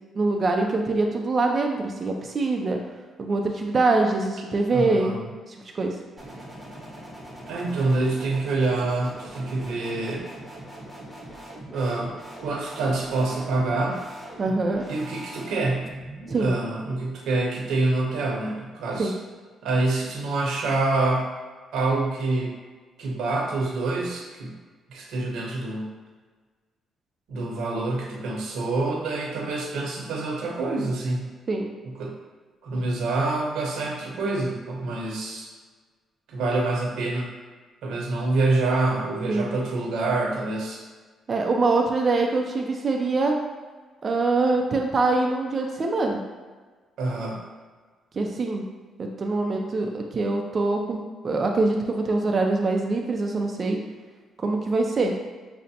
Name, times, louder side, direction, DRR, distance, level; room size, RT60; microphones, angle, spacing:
voice 1, 0.2-2.8 3.2-5.2 5.5-6.0 14.4-14.8 16.3-16.5 19.0-19.1 31.5-31.7 39.3-39.5 41.3-43.4 44.0-46.2 48.1-48.6 49.0-53.8 54.4-55.1, right 3 dB, 40° right, 2 dB, 0.4 m, -24 dB
voice 2, 4.7-5.3 7.5-10.3 11.7-12.1 12.4-14.0 14.9-15.9 16.4-19.1 19.6-21.3 21.7-22.5 23.0-24.5 24.9-25.9 27.3-31.3 31.8-32.1 32.6-35.5 36.3-37.3 37.8-40.8 47.0-47.4, right 2 dB, 80° right, -2 dB, 0.9 m, -26 dB
sound 1, 6.2-16.5, right 1 dB, 5° right, 1.0 m, -41 dB
6.2 x 2.1 x 2.8 m, 1.4 s
cardioid pair, 90°, 0 cm